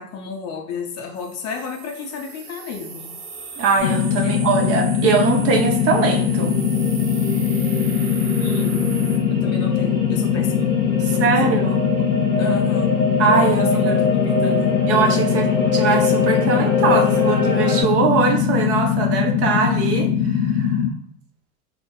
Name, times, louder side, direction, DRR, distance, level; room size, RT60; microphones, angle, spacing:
voice 1, 0.0-3.2 4.2-4.7 8.4-8.9 9.3-10.7 11.0-11.3 12.4-12.9 13.6-14.8 19.5-19.6, left 5 dB, 35° left, 3 dB, 0.5 m, -32 dB
sound 1, 1.2-9.2, right 5 dB, 70° right, 0.8 m, -37 dB
sound 2, 3.4-3.5 3.6-3.7 4.1-17.8, left 2 dB, 10° right, 1.3 m, -26 dB
voice 2, 3.6-6.5 11.0-11.8 13.2-14.0 14.9-20.8, right 5 dB, 35° right, 3 dB, 0.5 m, -21 dB
sound 3, 3.8-20.9, left 8 dB, 85° left, 0.5 m, -21 dB
2.6 x 2.1 x 3.6 m, 0.66 s
hypercardioid pair, 90°, 45 cm